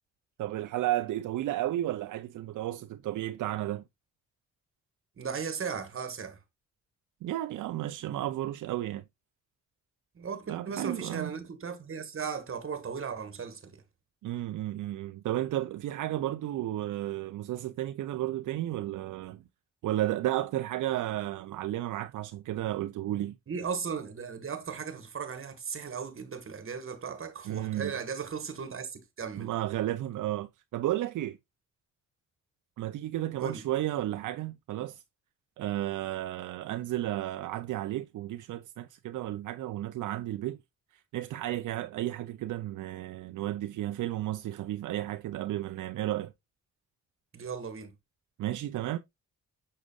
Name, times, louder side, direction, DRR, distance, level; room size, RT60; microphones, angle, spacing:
voice 1, 0.4-3.8 7.2-9.0 10.5-11.3 14.2-19.4 19.8-23.4 27.4-27.9 29.4-31.4 32.8-35.0 35.6-40.6 40.9-46.3 48.4-49.0, right 14 dB, 70° right, 0.5 m, -33 dB
voice 2, 5.2-6.4 10.1-13.8 23.5-29.5 33.4-33.7 47.3-47.9, right 6 dB, 40° right, 1.6 m, -37 dB
6.5 x 6.2 x 2.4 m
cardioid pair, 95°, 31 cm